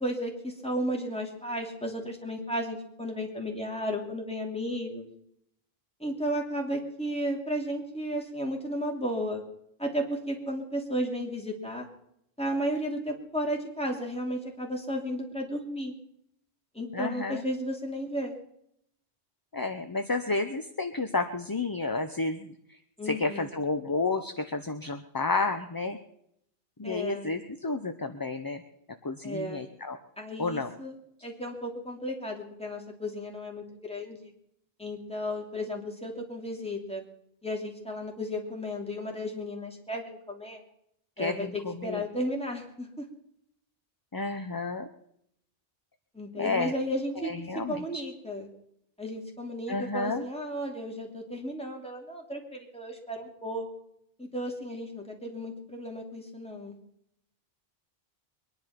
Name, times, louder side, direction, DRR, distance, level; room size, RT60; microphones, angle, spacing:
voice 1, 0.0-5.1 6.0-9.4 9.8-11.9 12.4-15.9 16.7-18.3 23.0-23.5 26.8-27.4 29.2-29.7 30.2-30.9 31.2-34.3 34.8-37.0 37.4-40.6 41.2-43.1 46.1-47.3 47.7-48.5 49.0-53.7 54.2-56.8, equal, 5° left, 0 dB, 2.9 m, -34 dB
voice 2, 16.9-17.4 19.5-22.5 23.0-26.0 26.8-28.6 29.0-30.0 30.4-30.7 41.2-42.0 44.1-44.9 46.3-46.7 47.2-48.0 49.7-50.3, left 3 dB, 25° left, 7 dB, 0.7 m, -31 dB
23.0 x 10.5 x 5.9 m, 0.75 s
omnidirectional pair, 1.1 m